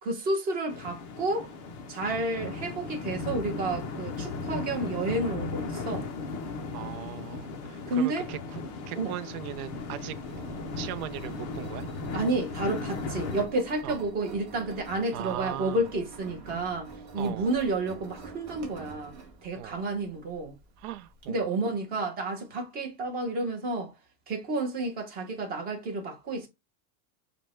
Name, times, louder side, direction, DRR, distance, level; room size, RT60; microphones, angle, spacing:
voice 1, 0.0-1.5 1.9-6.1 7.9-8.2 9.0-9.2 12.1-19.1 19.4-20.5 21.3-23.9 24.3-26.5, right 2 dB, 20° right, 0.8 m, -30 dB
sound 1, 0.7-13.5, left 4 dB, 30° left, 0.4 m, -36 dB
voice 2, 6.7-10.1 10.8-11.9 13.8-14.0 15.1-15.8 17.2-17.5 19.6-19.8 20.8-21.4, right 13 dB, 65° right, 0.6 m, -39 dB
Engine, 9.6-21.3, right 4 dB, 35° right, 1.2 m, -46 dB
5.2 x 2.2 x 4.2 m
supercardioid pair, 180°, 48 cm